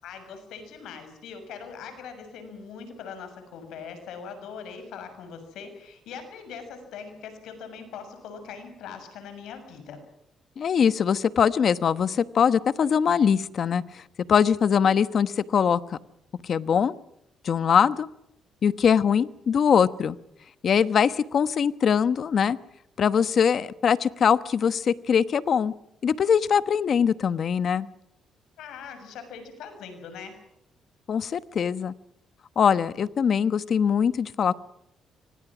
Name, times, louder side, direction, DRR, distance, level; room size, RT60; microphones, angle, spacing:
voice 1, 0.0-10.0 28.6-30.3, left 6 dB, 85° left, 8 dB, 6.6 m, -41 dB
voice 2, 10.6-14.0 14.3-16.0 16.4-16.9 17.4-18.1 18.6-20.2 20.6-22.6 23.0-25.7 26.0-27.9 31.1-31.9 32.6-34.5, left 7 dB, 55° left, 14 dB, 1.1 m, -22 dB
25.5 x 24.5 x 6.2 m, 0.81 s
cardioid pair, 90°, 0 cm